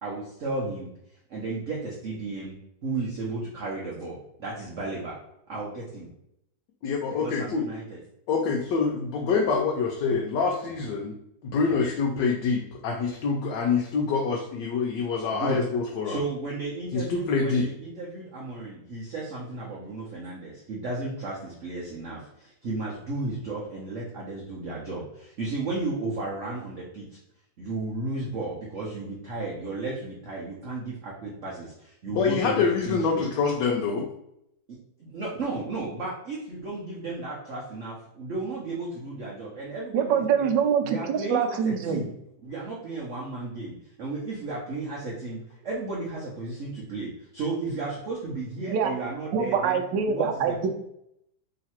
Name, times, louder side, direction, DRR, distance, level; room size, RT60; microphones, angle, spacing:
voice 1, 0.0-0.9 1.3-2.5 2.8-5.2 5.5-6.1 7.1-8.0 11.6-11.8 15.3-15.6 16.0-27.2 27.6-33.3 34.7-40.5 40.8-42.1 42.4-49.8 50.1-50.7, right 3 dB, 55° right, -4 dB, 0.9 m, -34 dB
voice 2, 6.8-7.7 8.3-11.1 11.5-16.2 16.9-17.7 32.1-34.1, left 5 dB, 75° left, 0 dB, 1.2 m, -26 dB
voice 3, 39.9-42.0 48.7-48.9 49.3-50.7, right 7 dB, 75° right, 6 dB, 1.2 m, -24 dB
3.2 x 2.9 x 4.3 m, 0.77 s
omnidirectional pair, 2.1 m